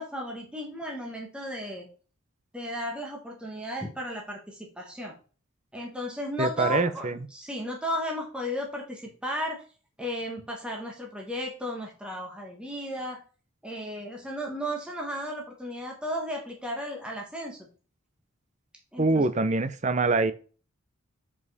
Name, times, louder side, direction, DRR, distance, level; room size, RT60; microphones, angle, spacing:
voice 1, 0.0-1.9 2.5-5.1 5.7-9.6 10.0-13.2 13.6-17.7 18.9-19.3, equal, 5° right, -1 dB, 1.2 m, -34 dB
voice 2, 6.4-7.2 19.0-20.3, right 3 dB, 35° right, 11 dB, 0.6 m, -24 dB
7.2 x 5.0 x 4.1 m, 0.38 s
head